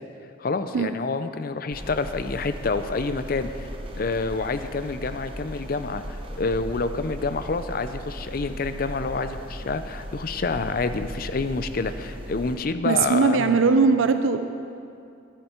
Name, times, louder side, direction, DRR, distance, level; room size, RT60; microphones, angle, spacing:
voice 1, 0.4-3.7 4.0-13.6, left 3 dB, 45° left, 10 dB, 0.5 m, -28 dB
sound 1, 1.7-12.6, equal, 25° right, 0.9 m, -37 dB
voice 2, 12.8-14.4, right 4 dB, 80° right, 9 dB, 0.5 m, -20 dB
12.0 x 11.5 x 4.4 m, 2.5 s
head